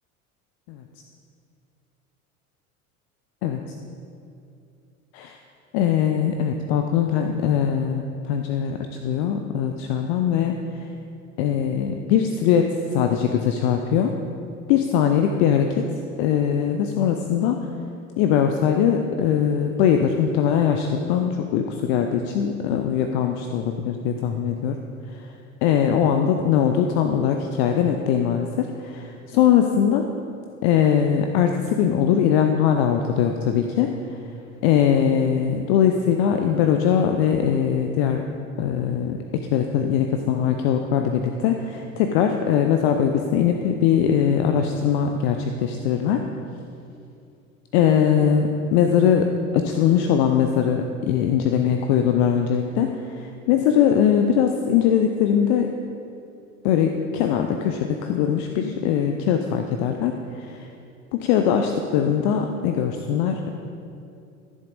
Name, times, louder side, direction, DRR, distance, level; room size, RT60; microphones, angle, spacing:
voice 1, 5.7-8.8 9.0-10.5 11.4-14.1 14.7-15.8 16.2-17.6 18.2-24.8 25.6-30.1 30.6-33.9 34.6-38.3 38.6-46.3 47.7-55.7 56.6-60.7 61.1-63.5, left 8 dB, 50° left, 5 dB, 0.6 m, -21 dB
14.0 x 7.2 x 2.6 m, 2.6 s
figure-of-eight pair, 70°, 43 cm